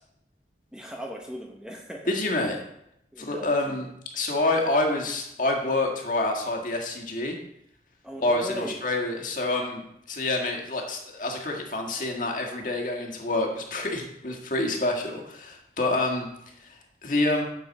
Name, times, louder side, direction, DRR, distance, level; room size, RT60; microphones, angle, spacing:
voice 1, 0.7-2.1 3.1-3.8 8.0-8.8, equal, 5° right, 0 dB, 0.9 m, -38 dB
voice 2, 2.1-2.6 3.2-3.9 4.1-7.4 8.2-17.4, left 2 dB, 45° left, 1 dB, 1.7 m, -27 dB
9.8 x 7.3 x 4.2 m, 0.79 s
head